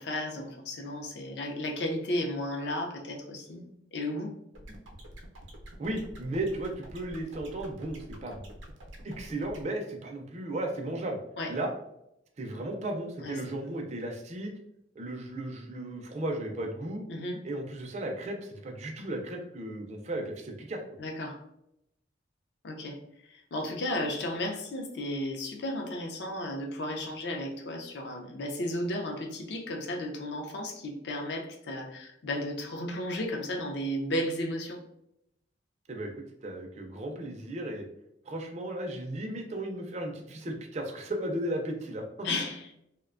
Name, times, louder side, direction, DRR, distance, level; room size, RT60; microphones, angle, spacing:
voice 1, 0.0-4.4 11.4-11.5 13.2-13.4 13.7-13.8 17.1-17.4 21.0-21.4 22.6-23.0 23.3-34.8 42.2-42.7, left 1 dB, 60° left, 1 dB, 0.5 m, -34 dB
sound 1, 4.5-9.6, right 1 dB, 80° right, 0.5 m, -47 dB
voice 2, 5.8-8.5 9.0-11.2 11.5-11.7 12.4-14.5 15.0-17.0 17.4-20.8 35.9-36.1 36.4-37.8 38.3-42.3, right 1 dB, 35° right, 2 dB, 0.4 m, -35 dB
2.5 x 2.1 x 2.4 m, 0.80 s
head